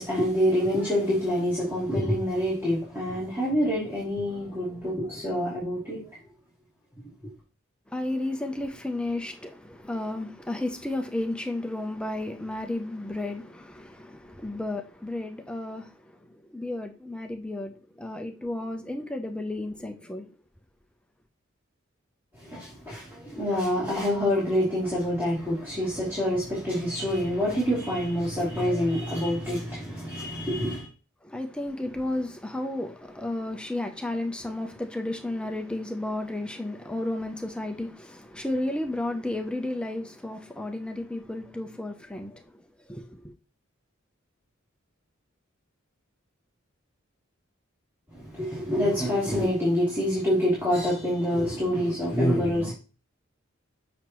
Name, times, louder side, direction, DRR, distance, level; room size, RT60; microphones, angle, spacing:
voice 1, 0.0-6.0 22.4-30.9 48.1-52.7, equal, 10° right, 2.7 m, -26 dB
voice 2, 7.9-20.3 31.2-43.3, left 1 dB, 5° left, 0.6 m, -33 dB
7.1 x 6.0 x 3.0 m
head